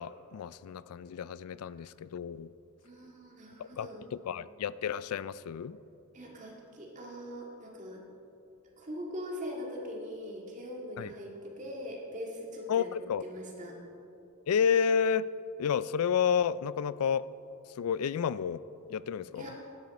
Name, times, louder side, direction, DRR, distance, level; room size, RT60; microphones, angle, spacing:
voice 1, 0.0-2.5 3.6-5.8 11.0-11.1 12.7-13.2 14.5-15.3 15.6-17.3 17.8-18.6 18.9-19.5, left 7 dB, 80° left, 18 dB, 0.4 m, -30 dB
voice 2, 2.8-4.0 4.3-4.4 6.1-8.0 8.8-12.9 13.2-13.8 19.4-19.6, equal, 35° right, -1 dB, 1.9 m, -41 dB
16.0 x 12.0 x 4.2 m, 2.9 s
head